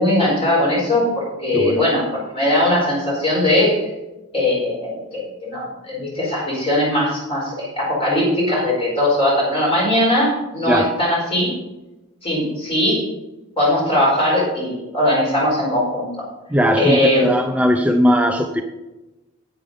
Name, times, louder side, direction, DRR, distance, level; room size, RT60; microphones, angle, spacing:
voice 1, 0.0-3.8 4.3-11.5 12.2-13.0 13.6-16.2 16.7-17.3, left 1 dB, 25° left, -5 dB, 4.5 m, -19 dB
voice 2, 16.5-18.6, equal, 5° right, 5 dB, 0.5 m, -18 dB
9.4 x 9.2 x 5.2 m, 1.0 s
head